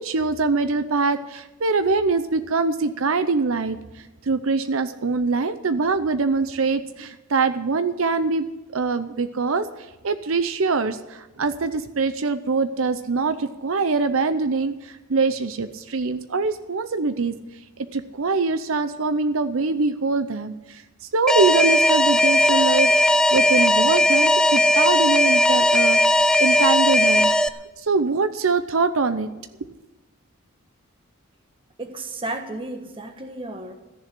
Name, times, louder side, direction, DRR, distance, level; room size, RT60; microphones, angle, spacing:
voice 1, 0.0-3.8 4.2-8.5 8.7-9.7 10.0-17.3 17.9-26.0 26.4-27.3 27.8-29.3, right 4 dB, 75° right, 10 dB, 0.7 m, -23 dB
Alarm, 21.3-27.5, left 1 dB, 5° left, 0.4 m, -17 dB
voice 2, 31.8-33.7, right 2 dB, 25° right, 5 dB, 1.4 m, -33 dB
14.5 x 7.1 x 10.0 m, 1.1 s
head